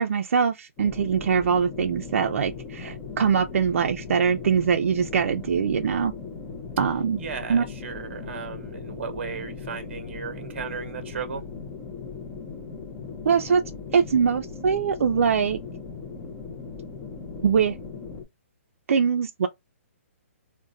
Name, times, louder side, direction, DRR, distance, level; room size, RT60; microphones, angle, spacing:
voice 1, 0.0-6.1 6.8-7.2 7.5-7.6 13.3-13.6 13.9-15.6 17.4-17.7 18.9-19.5, right 6 dB, 70° right, 0.3 m, -22 dB
sound 1, 0.8-18.2, left 5 dB, 15° left, 0.4 m, -38 dB
voice 2, 7.2-11.4, right 6 dB, 50° right, 0.8 m, -35 dB
2.5 x 2.1 x 3.8 m
hypercardioid pair, 170°, 8 cm